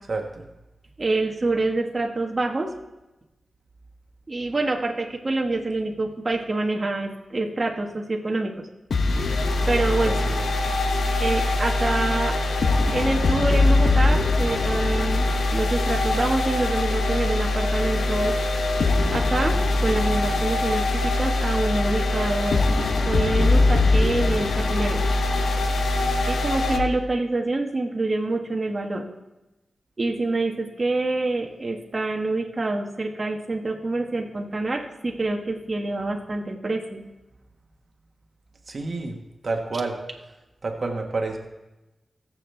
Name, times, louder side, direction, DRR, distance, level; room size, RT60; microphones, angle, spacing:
voice 1, 0.1-0.4 10.0-10.5 38.7-39.2 39.4-40.0 40.6-41.4, right 3 dB, 60° right, 2 dB, 1.5 m, -29 dB
voice 2, 1.0-2.7 4.3-8.5 9.7-10.2 11.2-12.4 12.9-15.2 15.5-18.3 19.1-19.6 19.8-22.7 23.1-25.0 26.3-29.0 30.0-37.0, right 2 dB, 40° right, 0 dB, 1.4 m, -26 dB
sound 1, 8.9-26.8, left 2 dB, 80° left, 1.0 m, -22 dB
20.0 x 7.4 x 3.4 m, 1.0 s
cardioid pair, 55°, 0 cm